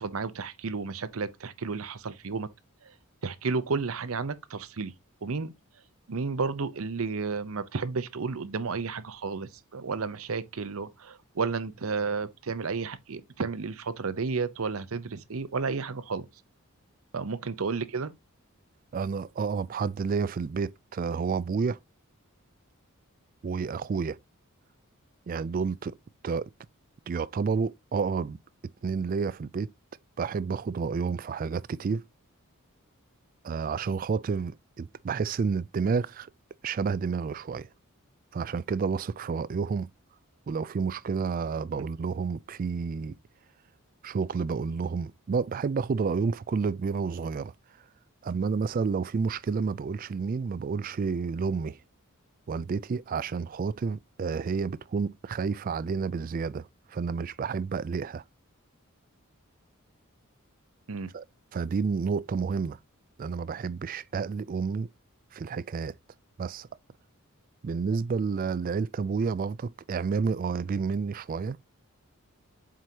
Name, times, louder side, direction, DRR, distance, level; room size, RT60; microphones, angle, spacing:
voice 1, 0.0-2.5 2.8-2.9 3.2-4.9 5.2-5.5 6.1-16.3 17.1-18.1 60.9-61.1, right 4 dB, 75° right, 0.7 m, -32 dB
voice 2, 18.9-21.8 23.4-24.2 25.3-25.9 26.2-26.5 27.1-28.4 28.8-29.7 30.2-32.0 33.4-36.3 36.6-37.7 38.3-39.9 40.5-43.2 44.0-47.5 48.2-51.8 52.5-58.2 61.1-61.2 61.5-62.8 63.2-64.9 65.3-65.9 66.4-66.7 67.6-71.6, right 5 dB, 40° right, 0.3 m, -30 dB
7.6 x 4.8 x 2.8 m
head